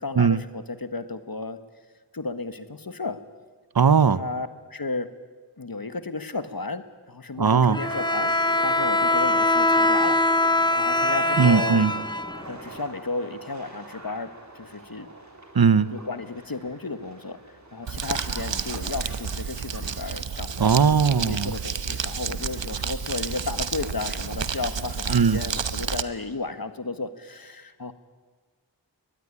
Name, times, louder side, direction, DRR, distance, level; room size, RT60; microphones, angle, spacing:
voice 1, 0.0-1.6 2.1-3.2 4.1-5.1 5.6-8.3 8.6-11.8 12.5-15.1 15.9-17.4 17.7-20.7 21.2-27.9, left 3 dB, 55° left, 1.6 m, -33 dB
voice 2, 3.8-4.2 7.4-7.8 11.4-11.9 15.5-15.9 20.6-21.5 25.1-25.4, right 6 dB, 55° right, 0.9 m, -19 dB
Bowed string instrument, 7.7-12.8, left 2 dB, 10° left, 0.9 m, -22 dB
sound 1, 7.8-25.7, right 2 dB, 40° right, 4.0 m, -42 dB
Crumpling crinkling, 17.9-26.0, right 6 dB, 80° right, 1.0 m, -30 dB
23.0 x 19.5 x 9.8 m
wide cardioid pair, 50°, 44 cm